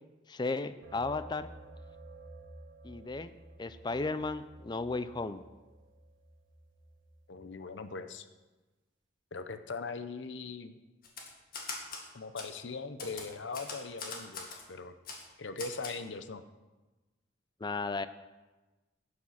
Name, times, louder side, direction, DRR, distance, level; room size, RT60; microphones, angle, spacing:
voice 1, 0.3-1.5 2.8-5.4 17.6-18.1, left 3 dB, 25° left, 13 dB, 0.4 m, -35 dB
sound 1, 0.8-7.4, right 2 dB, 80° right, 1.2 m, -52 dB
voice 2, 7.3-8.3 9.3-10.8 12.1-15.0 15.4-16.4, left 4 dB, 70° left, 10 dB, 0.7 m, -40 dB
Typewriter, 11.0-12.1 12.4-12.5 13.0-14.6 15.1-15.2 15.6-16.0, left 4 dB, 50° left, 1.7 m, -41 dB
10.5 x 8.6 x 5.8 m, 1.2 s
head